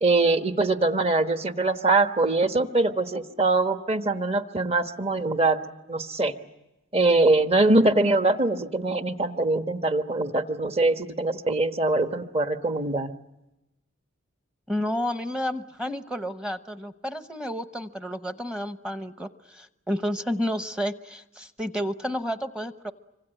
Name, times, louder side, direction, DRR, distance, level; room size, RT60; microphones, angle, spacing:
voice 1, 0.0-5.6 5.9-6.3 6.9-13.1, right 2 dB, 30° right, 8 dB, 1.3 m, -23 dB
voice 2, 14.7-22.9, equal, 5° right, 9 dB, 0.9 m, -31 dB
26.0 x 24.5 x 9.0 m, 0.96 s
head